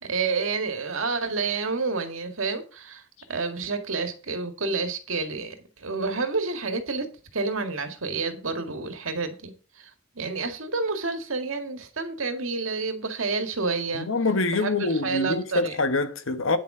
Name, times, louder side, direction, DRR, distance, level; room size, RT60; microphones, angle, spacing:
voice 1, 0.0-9.9 10.2-14.1 14.5-15.8, right 4 dB, 85° right, 1.9 m, -29 dB
voice 2, 13.9-16.6, left 2 dB, 80° left, 1.2 m, -25 dB
9.6 x 7.1 x 5.0 m
head